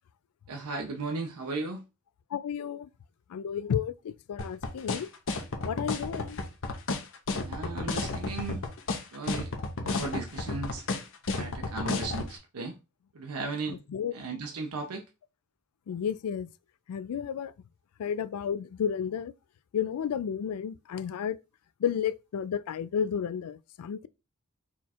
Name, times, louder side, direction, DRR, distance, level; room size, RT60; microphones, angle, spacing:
voice 1, 0.5-1.8 7.4-8.6 9.1-9.5 9.8-10.9 11.3-12.8 13.1-13.8 14.1-15.0, right 3 dB, 85° right, 0.6 m, -36 dB
voice 2, 2.3-2.9 3.3-5.1 5.6-6.4 13.7-14.1 15.9-16.5 16.9-17.5 18.0-19.3 19.7-21.4 21.8-24.1, left 8 dB, 80° left, 0.3 m, -32 dB
sound 1, 4.4-12.3, left 3 dB, 60° left, 0.8 m, -31 dB
4.4 x 2.4 x 4.1 m
head